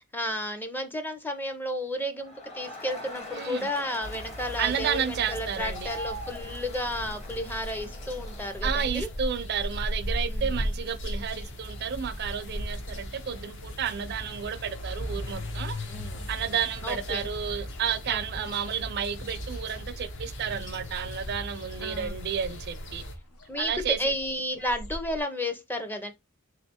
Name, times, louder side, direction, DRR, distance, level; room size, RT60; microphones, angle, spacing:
voice 1, 0.1-9.1 10.3-10.5 15.8-16.3 16.8-17.3 18.1-18.5 21.8-22.1 23.5-23.7 24.0-26.1, left 1 dB, 10° left, 0.5 m, -33 dB
Crowd, 2.2-9.2, left 1 dB, 30° left, 0.9 m, -43 dB
voice 2, 3.3-3.7 4.6-5.9 8.6-15.7 16.3-23.0 23.6-24.0, right 8 dB, 50° right, 0.4 m, -31 dB
sound 1, 4.0-23.2, left 1 dB, 55° left, 0.8 m, -40 dB
sound 2, 5.6-17.2 17.4-18.8 19.0-25.2, equal, 85° left, 0.8 m, -37 dB
3.8 x 3.2 x 2.8 m
head